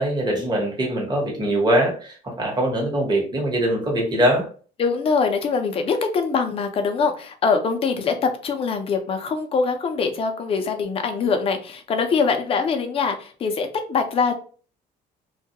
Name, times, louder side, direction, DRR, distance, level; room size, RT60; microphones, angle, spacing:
voice 1, 0.0-4.5, right 1 dB, 25° right, 0 dB, 1.0 m, -22 dB
voice 2, 4.8-14.3, left 5 dB, 35° left, 5 dB, 0.5 m, -23 dB
2.3 x 2.1 x 2.7 m, 0.40 s
cardioid pair, 110°, 17 cm